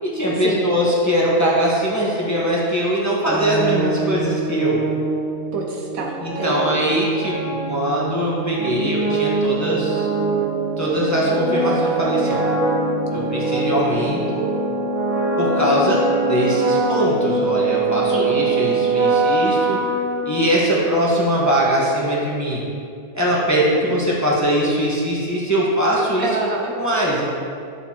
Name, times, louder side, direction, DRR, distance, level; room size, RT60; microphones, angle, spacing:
voice 1, 0.0-4.8 6.2-10.1 10.8-12.5 13.1-14.4 15.4-19.8 20.2-22.6 23.1-26.3 26.8-27.3, right 1 dB, 10° left, -6 dB, 1.1 m, -21 dB
sound 1, 3.3-20.9, right 3 dB, 10° right, 0.6 m, -23 dB
voice 2, 5.5-6.7 12.3-12.4 18.1-18.4 26.2-26.7, right 3 dB, 65° right, 0 dB, 1.1 m, -27 dB
11.0 x 6.8 x 2.9 m, 2.5 s
omnidirectional pair, 1.7 m